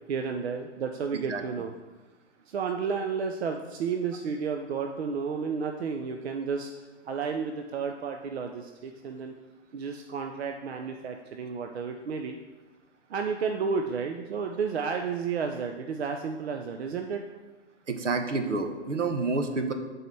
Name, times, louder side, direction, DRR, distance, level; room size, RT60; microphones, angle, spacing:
voice 1, 0.1-1.7 2.5-6.7 7.1-9.3 9.7-12.4 13.1-17.2, right 5 dB, 60° right, 4 dB, 0.7 m, -32 dB
voice 2, 17.9-19.7, right 3 dB, 75° right, 6 dB, 1.1 m, -28 dB
11.5 x 4.6 x 3.3 m, 1.2 s
figure-of-eight pair, 125°, 36 cm